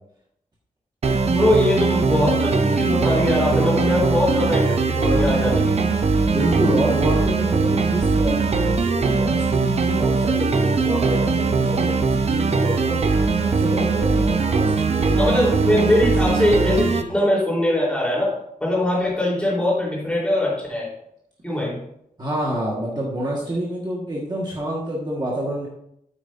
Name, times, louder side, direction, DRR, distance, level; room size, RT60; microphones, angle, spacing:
sound 1, 1.0-17.0, right 4 dB, 45° right, 0.7 m, -20 dB
voice 1, 1.3-5.9 15.2-18.3 18.6-20.9 21.4-21.8, left 1 dB, 5° left, -5 dB, 3.6 m, -21 dB
voice 2, 6.3-13.0 13.4-15.9 22.2-25.7, right 1 dB, 30° right, -4 dB, 1.5 m, -27 dB
9.1 x 8.5 x 2.6 m, 0.74 s
wide cardioid pair, 175°, 14 cm